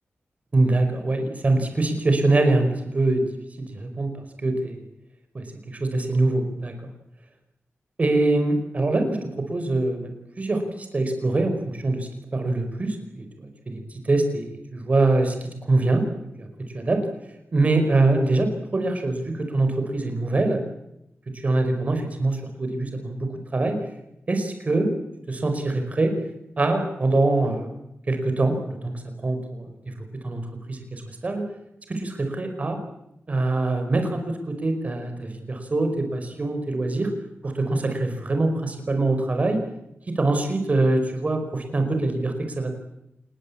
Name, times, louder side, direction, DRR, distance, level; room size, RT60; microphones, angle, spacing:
voice 1, 0.5-3.2 3.6-4.1 4.4-4.8 5.3-6.7 8.0-10.1 10.4-13.8 14.0-16.0 16.4-16.5 16.7-17.0 17.5-20.6 21.4-23.8 24.3-24.9 25.3-26.1 26.6-27.7 28.1-28.9 29.2-29.6 30.2-30.4 30.7-31.4 31.9-32.8 33.3-37.1 37.4-39.6 40.2-42.7, right 2 dB, 35° right, 6 dB, 5.2 m, -24 dB
28.0 x 20.5 x 8.8 m, 0.84 s
wide cardioid pair, 145°, 4 cm